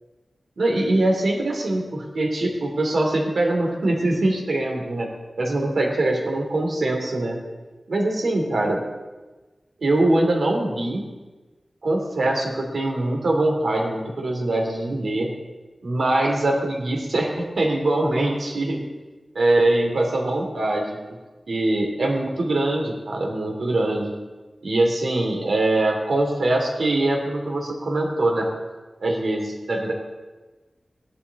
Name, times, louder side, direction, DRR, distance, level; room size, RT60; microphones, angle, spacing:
voice 1, 0.6-5.1 5.4-7.4 7.9-8.8 9.8-11.0 11.8-15.3 15.8-18.8 19.3-21.2 21.5-24.1 24.6-28.5 29.0-29.9, right 2 dB, 85° right, 1 dB, 2.8 m, -23 dB
17.0 x 11.0 x 4.1 m, 1.2 s
wide cardioid pair, 80°, 0 cm